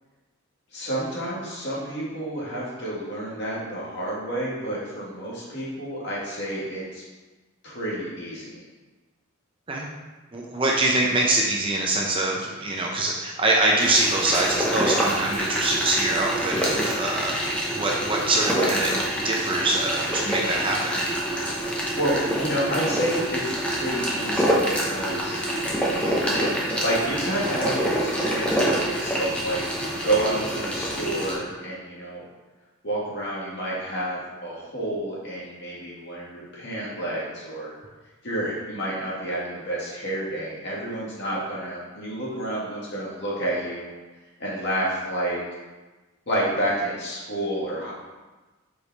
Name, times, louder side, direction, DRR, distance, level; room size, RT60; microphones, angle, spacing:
voice 1, 0.7-7.0 7.6-8.6 21.7-25.5 26.3-26.5 26.8-29.6 30.0-32.2 32.8-37.7 38.2-43.9 44.4-45.4 46.3-47.9, right 1 dB, 50° left, -6 dB, 1.9 m, -29 dB
voice 2, 10.3-19.0 19.2-21.1, right 2 dB, 25° right, -1 dB, 0.6 m, -24 dB
sound 1, 13.8-31.4, right 1 dB, 5° left, 0.8 m, -26 dB
5.1 x 4.8 x 4.1 m, 1.2 s
head